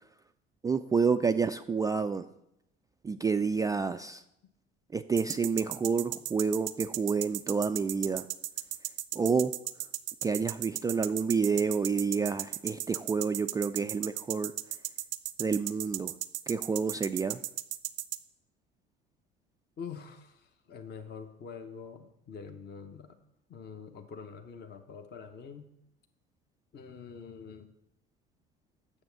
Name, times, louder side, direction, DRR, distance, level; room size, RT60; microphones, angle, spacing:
voice 1, 0.6-2.3 3.0-4.2 4.9-8.3 9.1-9.5 10.2-14.5 15.4-16.1 16.5-17.4, right 5 dB, 10° right, 8 dB, 0.3 m, -29 dB
sound 1, 5.2-18.2, right 16 dB, 65° right, 0.7 m, -35 dB
voice 2, 19.8-23.2 23.5-25.7 26.7-27.7, left 6 dB, 35° left, 6 dB, 0.9 m, -45 dB
9.8 x 7.2 x 5.7 m, 0.83 s
figure-of-eight pair, 60°, 30 cm